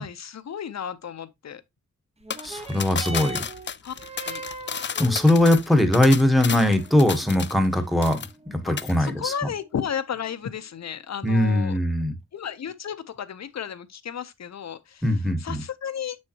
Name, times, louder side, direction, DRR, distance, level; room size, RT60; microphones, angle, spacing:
voice 1, 0.0-1.6 3.8-4.4 8.6-8.7 9.0-11.8 12.3-15.0 15.4-16.2, left 8 dB, 65° left, 0.7 m, -33 dB
sound 1, 2.2-11.2 12.0-12.1, right 3 dB, 20° right, 0.8 m, -43 dB
sound 2, 2.3-7.7 8.0-8.5 8.8-8.9, left 7 dB, 40° left, 0.4 m, -33 dB
voice 2, 2.4-3.4 5.0-9.3 11.2-12.1 15.0-15.6, left 1 dB, ahead, 1.1 m, -21 dB
7.2 x 6.4 x 2.9 m
wide cardioid pair, 160°, 29 cm